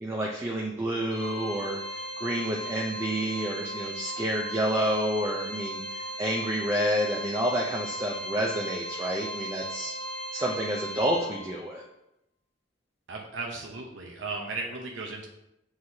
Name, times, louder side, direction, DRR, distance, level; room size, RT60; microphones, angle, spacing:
voice 1, 0.0-1.8 2.2-9.9 10.3-11.8, equal, 15° right, -1 dB, 0.6 m, -29 dB
Organ, 1.1-11.8, equal, 35° left, 1.3 m, -37 dB
voice 2, 13.1-15.3, right 3 dB, 80° right, 0 dB, 0.8 m, -36 dB
7.7 x 4.8 x 2.8 m, 0.85 s
head